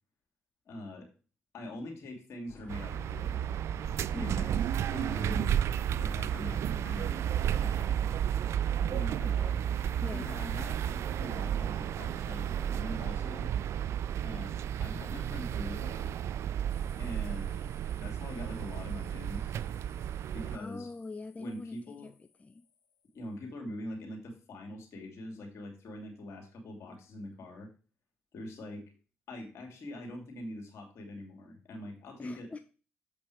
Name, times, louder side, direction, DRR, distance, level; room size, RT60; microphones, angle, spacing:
voice 1, 0.7-1.1 1.5-3.4 4.1-4.6 4.9-5.4 6.0-8.1 8.6-9.6 10.1-13.5 14.2-16.2 17.0-17.7 18.0-19.5 20.3-20.9 21.4-22.1 23.1-27.7 28.3-28.8 29.3-32.5, left 1 dB, 65° left, 2 dB, 2.6 m, -43 dB
sound 1, 2.5-10.7, left 4 dB, 40° left, 1.8 m, -52 dB
sound 2, 2.7-20.6, right 10 dB, 65° right, 0.3 m, -32 dB
voice 2, 4.1-4.4 5.3-5.6 10.0-10.3 20.5-21.8 22.0-22.1 22.4-22.6 32.2-32.6, left 3 dB, 25° left, 8 dB, 0.6 m, -42 dB
sound 3, 16.7-23.4, left 7 dB, 90° left, 1.6 m, -64 dB
7.3 x 5.3 x 4.7 m, 0.36 s
hypercardioid pair, 45°, 5 cm